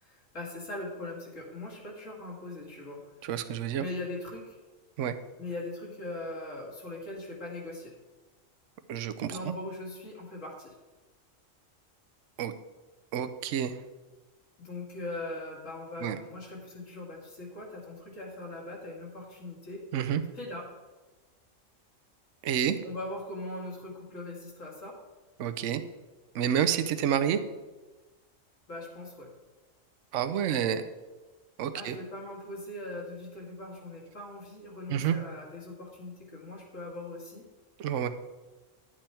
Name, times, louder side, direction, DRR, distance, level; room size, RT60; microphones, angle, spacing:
voice 1, 0.0-3.3 3.8-4.6 5.4-7.9 9.3-10.8 14.6-19.9 20.3-20.7 22.8-25.0 28.7-29.3 31.7-37.5, left 2 dB, 70° left, -2 dB, 2.6 m, -40 dB
voice 2, 3.2-3.8 5.0-5.2 8.9-9.5 12.4-12.5 13.1-13.8 16.0-16.2 19.9-20.2 22.4-22.8 25.4-25.8 26.3-27.4 30.1-30.8 31.6-32.0 34.9-35.2 37.8-38.1, right 9 dB, 70° right, 11 dB, 1.0 m, -29 dB
10.5 x 7.6 x 4.4 m, 1.2 s
omnidirectional pair, 1.4 m